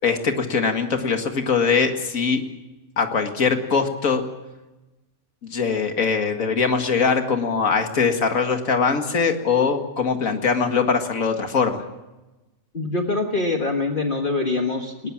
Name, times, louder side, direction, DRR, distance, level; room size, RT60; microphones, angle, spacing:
voice 1, 0.0-2.4 3.0-4.2 5.4-11.8, left 5 dB, 75° left, 5 dB, 2.3 m, -22 dB
voice 2, 12.7-15.1, left 3 dB, 40° left, 3 dB, 1.6 m, -24 dB
20.5 x 20.0 x 7.4 m, 1.1 s
omnidirectional pair, 1.4 m